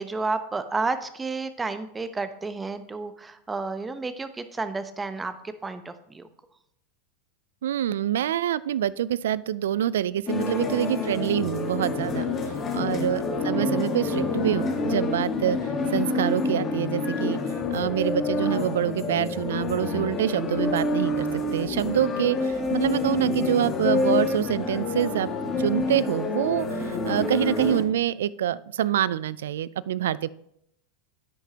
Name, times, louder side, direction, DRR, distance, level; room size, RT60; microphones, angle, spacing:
voice 1, 0.0-6.3 12.8-13.1, right 3 dB, 15° right, 10 dB, 0.8 m, -31 dB
voice 2, 7.6-25.3 25.6-30.3, right 11 dB, 80° right, 20 dB, 0.3 m, -26 dB
sound 1, 10.3-27.8, left 3 dB, 30° left, 1.4 m, -27 dB
9.9 x 9.0 x 2.9 m, 0.75 s
hypercardioid pair, 105°, 0 cm